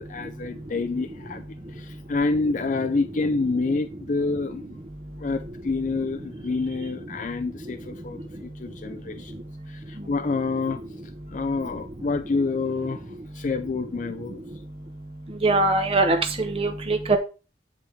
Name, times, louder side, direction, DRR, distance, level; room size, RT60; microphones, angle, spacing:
voice 1, 0.0-4.6 5.2-9.3 9.7-10.8 11.3-13.0 13.3-14.4, left 3 dB, 45° left, 0.4 m, -28 dB
voice 2, 15.4-17.2, right 2 dB, 35° right, 0.8 m, -22 dB
9.2 x 3.6 x 4.5 m
head